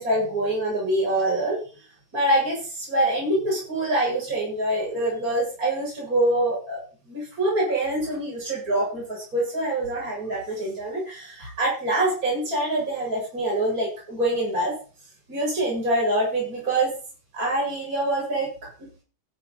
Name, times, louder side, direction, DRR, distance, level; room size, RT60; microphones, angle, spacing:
voice 1, 0.0-1.6 2.1-6.8 7.1-14.7 15.3-16.9 17.3-18.5, right 1 dB, 25° right, -4 dB, 8.5 m, -25 dB
16.0 x 11.5 x 4.4 m, 0.38 s
omnidirectional pair, 3.5 m